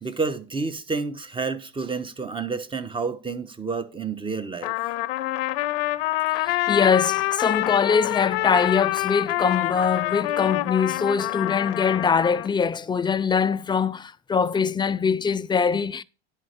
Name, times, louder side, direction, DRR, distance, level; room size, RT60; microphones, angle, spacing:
voice 1, 0.0-4.7, right 4 dB, 15° right, 1.1 m, -29 dB
Trumpet, 4.6-12.5, left 16 dB, 80° left, 0.7 m, -26 dB
voice 2, 6.3-16.0, left 6 dB, 15° left, 0.4 m, -23 dB
11.0 x 4.4 x 6.5 m
supercardioid pair, 105°, 30 cm